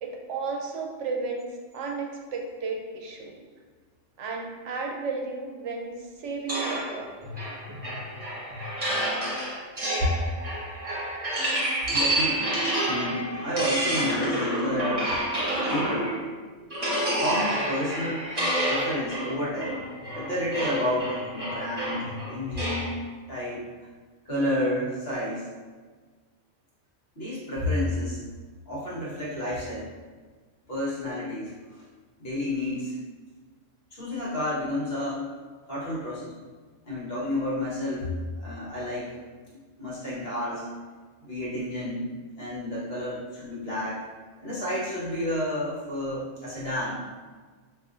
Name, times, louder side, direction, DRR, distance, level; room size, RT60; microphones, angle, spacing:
voice 1, 0.0-3.4 4.2-7.1, right 4 dB, 75° right, 1 dB, 0.9 m, -33 dB
sound 1, 6.5-16.3 16.7-22.9, right 1 dB, 30° right, 1.1 m, -29 dB
voice 2, 11.9-12.6 12.9-15.0 15.7-16.1 17.2-18.2 18.7-19.8 20.1-22.9 23.3-23.7 24.2-25.5 27.1-28.2 28.7-29.9 30.7-31.8 32.2-32.9 33.9-35.2 35.7-36.3 36.8-39.2 39.5-40.7 41.2-42.1 42.4-44.0 44.4-47.0, left 1 dB, 55° left, -7 dB, 1.4 m, -30 dB
5.5 x 2.5 x 2.5 m, 1.4 s
omnidirectional pair, 1.2 m